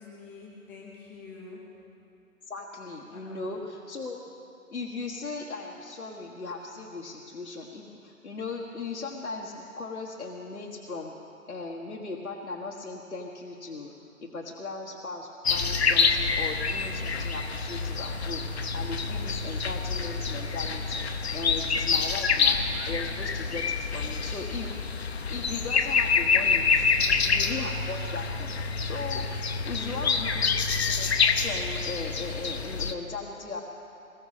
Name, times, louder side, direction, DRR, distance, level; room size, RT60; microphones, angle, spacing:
voice 1, 0.0-1.7 3.1-3.6 14.5-14.6 29.7-30.6, left 3 dB, 5° left, -4 dB, 0.8 m, -46 dB
voice 2, 2.5-4.2 4.7-11.1 11.5-13.9 14.2-21.0 21.3-24.8 25.3-28.5 28.8-29.4 29.6-30.5 30.9-33.6, left 3 dB, 85° left, -2 dB, 1.7 m, -38 dB
sound 1, 15.4-32.9, left 5 dB, 50° left, 0.9 m, -27 dB
21.0 x 15.0 x 4.2 m, 2.7 s
figure-of-eight pair, 150°, 42 cm